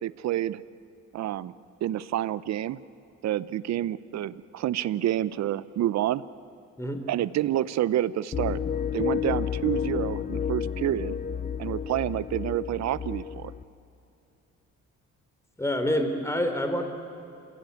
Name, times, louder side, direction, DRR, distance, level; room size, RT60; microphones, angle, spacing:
voice 1, 0.0-0.6 1.1-1.5 1.8-2.8 3.2-6.2 7.1-8.6 8.9-11.2 11.6-13.5, right 12 dB, 65° right, 17 dB, 0.7 m, -28 dB
sound 1, 8.3-13.6, left 7 dB, 30° left, 0.6 m, -31 dB
voice 2, 15.6-16.8, equal, 10° left, 6 dB, 3.3 m, -27 dB
28.0 x 15.5 x 9.4 m, 2.6 s
cardioid pair, 90°, 30 cm